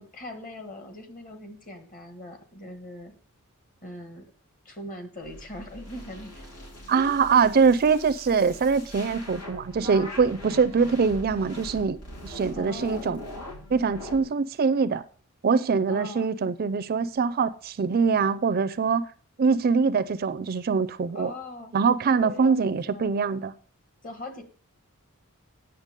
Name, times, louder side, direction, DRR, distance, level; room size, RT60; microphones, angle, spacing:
voice 1, 0.0-3.1 3.8-4.3 4.7-6.5 6.9-7.2 12.5-13.1 15.9-16.3 21.1-21.7 22.1-22.6 22.9-23.3 24.0-24.4, left 1 dB, 40° left, 1.7 m, -41 dB
sound 1, 5.2-14.2, left 1 dB, 90° left, 3.3 m, -42 dB
voice 2, 6.9-13.2 13.7-15.0 15.4-19.1 19.4-21.3 21.7-23.5, right 5 dB, 40° right, 0.4 m, -23 dB
8.9 x 6.9 x 5.2 m
head